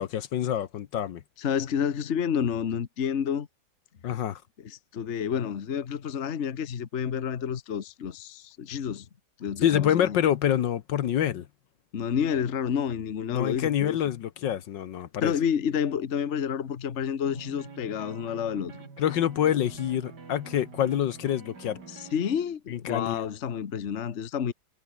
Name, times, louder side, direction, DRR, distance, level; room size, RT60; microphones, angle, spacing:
voice 1, 0.0-1.2 4.0-4.4 9.6-11.4 13.3-15.3 19.0-21.8 22.7-23.3, left 10 dB, 70° left, 1.6 m, -26 dB
voice 2, 1.4-3.5 4.6-9.1 9.4-10.2 11.9-14.0 15.2-18.8 21.9-24.5, left 8 dB, 40° left, 1.3 m, -29 dB
sound 1, 17.2-22.3, right 4 dB, 60° right, 3.4 m, -46 dB
omnidirectional pair, 2.1 m